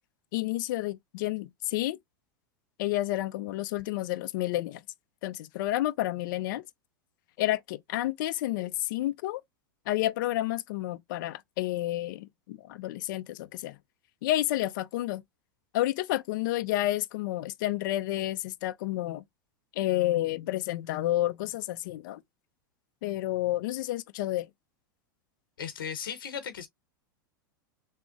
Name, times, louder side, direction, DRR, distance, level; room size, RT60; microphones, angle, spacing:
voice 1, 0.3-2.0 2.8-4.8 5.2-6.6 7.4-9.4 9.9-13.8 14.2-15.2 15.7-19.2 19.8-22.2 23.0-24.5, left 15 dB, 65° left, 0.5 m, -30 dB
voice 2, 25.6-26.7, left 7 dB, 85° left, 0.8 m, -36 dB
3.7 x 2.1 x 3.5 m
hypercardioid pair, 105°, 11 cm